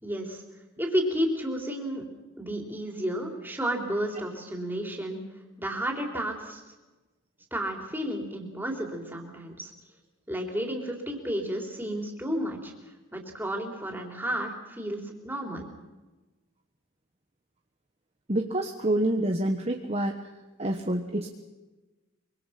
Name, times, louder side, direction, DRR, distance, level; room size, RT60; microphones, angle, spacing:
voice 1, 0.0-0.4 0.8-2.0 2.4-5.2 5.6-6.6 7.5-9.7 10.3-12.7 13.1-15.7, equal, 10° right, 1 dB, 3.7 m, -32 dB
voice 2, 18.3-20.2 20.6-21.3, right 1 dB, 30° right, 4 dB, 1.2 m, -27 dB
24.5 x 24.5 x 5.9 m, 1.2 s
head